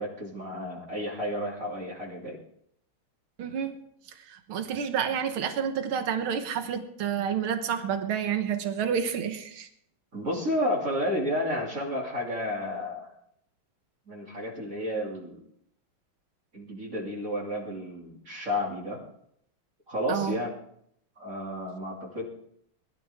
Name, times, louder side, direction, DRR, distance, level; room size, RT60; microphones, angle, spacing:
voice 1, 0.0-2.4 10.1-13.1 14.1-15.4 16.5-19.0 19.9-20.5 21.2-22.3, left 1 dB, 40° right, -3 dB, 3.3 m, -31 dB
voice 2, 3.4-3.7 4.3-9.7 20.1-20.4, right 7 dB, 85° right, 7 dB, 2.1 m, -29 dB
21.5 x 12.5 x 3.6 m, 0.69 s
omnidirectional pair, 2.3 m